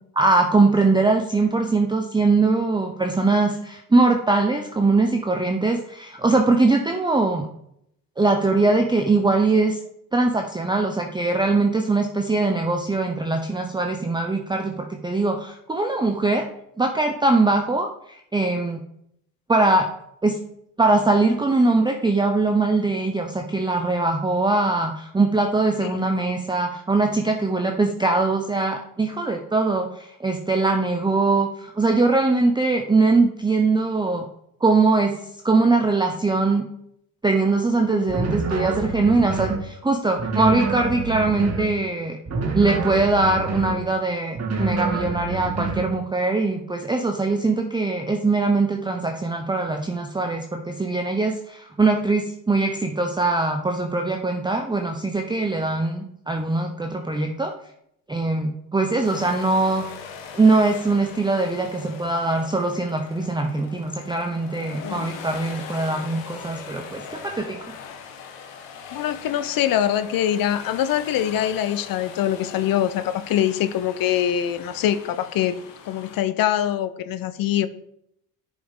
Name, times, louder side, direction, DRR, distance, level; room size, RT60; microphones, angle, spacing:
voice 1, 0.2-7.5 8.2-9.8 10.1-16.5 16.8-18.8 19.5-19.9 20.2-20.4 20.8-34.3 34.6-35.2 35.4-36.6 37.2-42.2 42.5-57.5 58.1-59.9 60.3-67.6, right 3 dB, 10° right, 4 dB, 0.8 m, -21 dB
sound 1, 38.1-39.7 40.2-41.8 42.3-43.8 44.4-45.9, right 3 dB, 30° right, 1.9 m, -27 dB
sound 2, 59.0-76.2, left 6 dB, 65° left, 1.7 m, -41 dB
voice 2, 68.9-75.6 75.9-77.7, left 11 dB, 45° left, 14 dB, 0.7 m, -23 dB
10.0 x 5.4 x 3.7 m, 0.75 s
hypercardioid pair, 70°, 48 cm